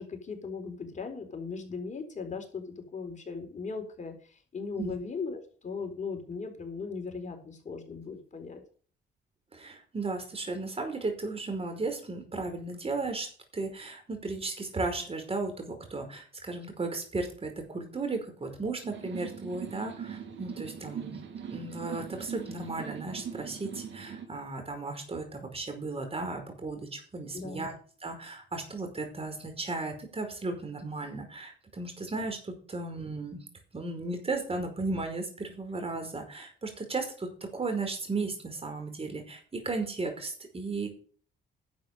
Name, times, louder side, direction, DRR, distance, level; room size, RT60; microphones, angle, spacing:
voice 1, 0.0-2.6 2.9-8.6 27.3-27.7, left 4 dB, 40° left, 4 dB, 4.2 m, -38 dB
voice 2, 9.5-13.3 13.5-21.2 21.5-27.7 28.0-33.4 33.7-40.9, right 3 dB, 30° right, 5 dB, 5.1 m, -35 dB
sound 1, 18.8-24.3, right 7 dB, 65° right, 2.8 m, -41 dB
11.5 x 7.6 x 6.8 m, 0.43 s
cardioid pair, 90°, 20 cm